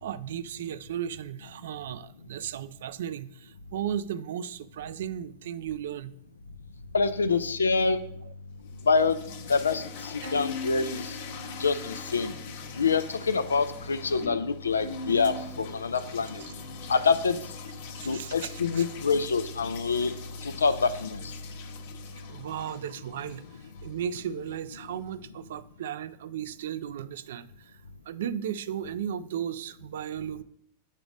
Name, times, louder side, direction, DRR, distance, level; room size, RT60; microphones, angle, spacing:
voice 1, 0.0-6.1 10.2-10.3 18.0-18.8 22.3-23.4 23.8-27.5 28.1-30.4, right 9 dB, 60° right, 16 dB, 0.4 m, -35 dB
voice 2, 6.9-8.0 8.9-9.2 9.5-11.1 11.6-12.3 12.8-16.4 16.9-17.4 18.1-20.1 20.4-21.3, left 4 dB, 75° left, 11 dB, 0.3 m, -26 dB
sound 1, 8.6-24.6, left 5 dB, 50° left, 0.8 m, -44 dB
Bowed string instrument, 10.2-12.6 13.0-13.8 14.8-17.3, left 1 dB, 85° right, 2.5 m, -41 dB
8.2 x 3.9 x 5.1 m, 0.67 s
figure-of-eight pair, 90°, 0 cm